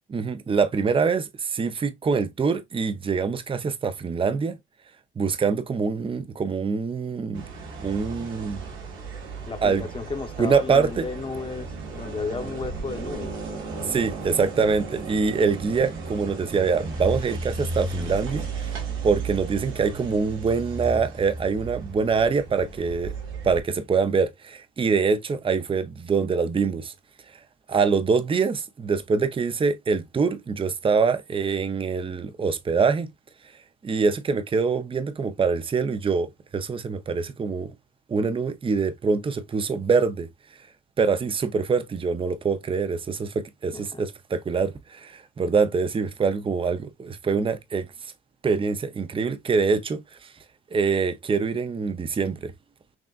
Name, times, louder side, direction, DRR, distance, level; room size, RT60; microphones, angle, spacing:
voice 1, 0.1-4.6 5.2-7.4 7.8-8.6 9.6-9.8 10.4-11.1 13.9-23.1 23.4-26.9 27.7-33.1 33.8-37.7 38.1-40.3 41.0-47.9 48.4-50.3 50.7-52.5, right 5 dB, 25° right, 0.6 m, -24 dB
sound 1, 7.3-23.6, right 3 dB, 85° right, 1.6 m, -35 dB
voice 2, 9.5-13.9 43.7-44.0, left 4 dB, 25° left, 0.9 m, -34 dB
6.1 x 2.4 x 2.4 m
cardioid pair, 90°, 20 cm